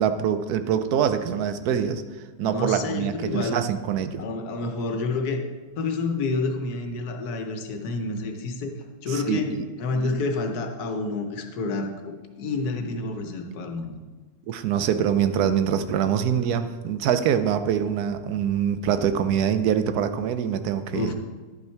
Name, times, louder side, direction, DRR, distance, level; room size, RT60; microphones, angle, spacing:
voice 1, 0.0-2.0 2.4-4.2 9.1-9.6 10.0-10.2 14.5-21.1, right 8 dB, 85° right, 10 dB, 1.2 m, -24 dB
voice 2, 2.4-3.6 4.2-5.4 5.8-8.7 9.0-9.5 9.8-11.9 12.4-14.0 20.9-21.1, left 3 dB, 85° left, 5 dB, 1.4 m, -28 dB
11.0 x 5.6 x 4.5 m, 1.3 s
omnidirectional pair, 1.6 m